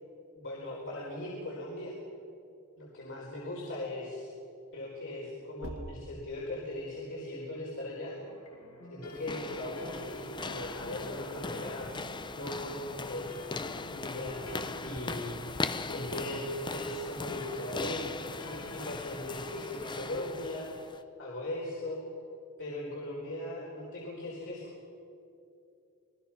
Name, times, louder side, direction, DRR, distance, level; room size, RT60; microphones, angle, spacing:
voice 1, 0.3-1.9 2.8-4.3 4.7-8.2 8.9-11.9 12.3-18.1 18.4-20.9 21.2-22.0 22.6-24.7, left 1 dB, 60° left, -5 dB, 4.3 m, -39 dB
sound 1, 5.6-6.7 9.7-10.3, right 1 dB, 70° right, 1.8 m, -45 dB
sound 2, 8.2-18.9, left 1 dB, 85° left, 3.3 m, -50 dB
sound 3, 9.1-21.0, left 3 dB, 20° left, 0.7 m, -39 dB
27.5 x 20.0 x 5.9 m, 2.7 s
head